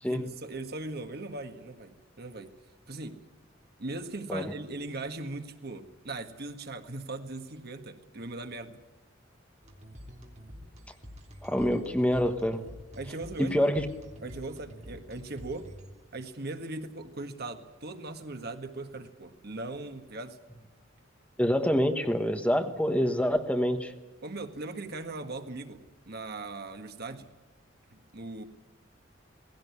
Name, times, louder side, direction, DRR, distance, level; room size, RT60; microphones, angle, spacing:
voice 1, 0.0-2.5 2.9-3.2 3.8-8.8 12.9-13.7 14.2-15.7 16.1-20.4 24.2-27.3 27.9-28.4, right 2 dB, 55° right, 7 dB, 1.7 m, -39 dB
sound 1, 9.6-16.3, equal, 35° right, 3.2 m, -48 dB
voice 2, 11.4-12.6 13.4-13.8 21.4-23.9, equal, 5° left, 6 dB, 1.3 m, -26 dB
19.0 x 16.5 x 9.7 m, 1.1 s
head